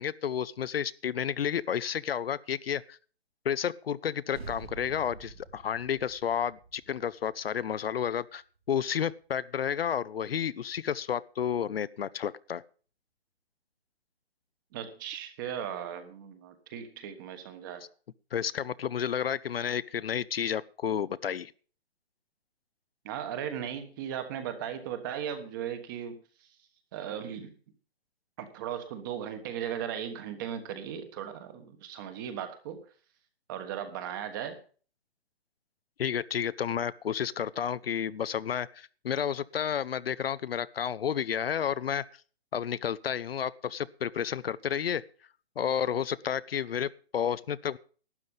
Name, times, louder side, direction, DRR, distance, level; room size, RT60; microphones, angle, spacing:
voice 1, 0.0-3.0 3.4-8.4 8.7-12.6 18.3-21.5 36.0-42.0 42.5-45.0 45.6-47.8, left 8 dB, 65° left, 18 dB, 0.7 m, -31 dB
sound 1, 4.3-9.1, right 5 dB, 70° right, 4.6 m, -48 dB
voice 2, 14.7-17.8 23.0-26.2 26.9-27.5 28.4-32.8 33.5-34.6, right 9 dB, 20° right, 9 dB, 1.3 m, -37 dB
12.0 x 9.6 x 5.5 m, 0.40 s
hypercardioid pair, 165°, 32 cm